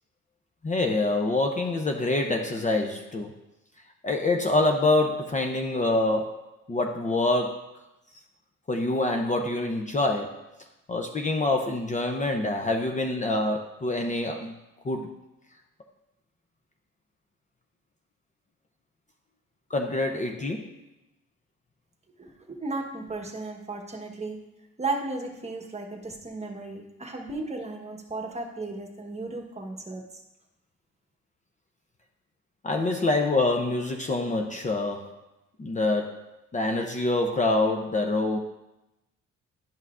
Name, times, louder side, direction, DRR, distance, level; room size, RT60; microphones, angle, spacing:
voice 1, 0.6-3.3 4.0-6.4 6.7-7.6 8.7-10.4 10.9-14.5 14.8-15.1 19.7-20.7 32.6-35.1 35.6-36.2 36.5-38.4, left 2 dB, 25° left, 4 dB, 0.6 m, -26 dB
voice 2, 22.2-24.4 24.8-30.2, right 3 dB, 20° right, 2 dB, 1.1 m, -35 dB
10.5 x 5.6 x 2.4 m, 0.96 s
cardioid pair, 90°, 30 cm